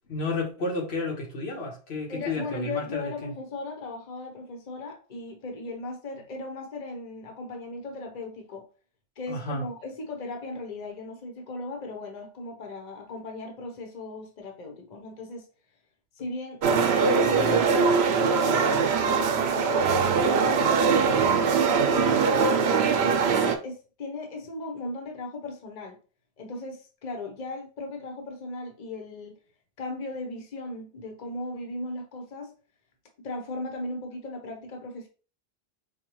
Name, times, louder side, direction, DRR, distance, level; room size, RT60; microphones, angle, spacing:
voice 1, 0.1-3.3 9.3-9.7, left 2 dB, 85° left, 1.3 m, -32 dB
voice 2, 2.1-8.6 9.2-15.5 16.2-16.6 17.1-21.5 21.9-26.0 26.4-29.3 29.8-32.5 33.2-35.1, left 2 dB, 45° left, 1.0 m, -37 dB
sound 1, 16.6-23.6, right 5 dB, 85° right, 0.9 m, -22 dB
4.8 x 2.3 x 3.0 m
omnidirectional pair, 1.0 m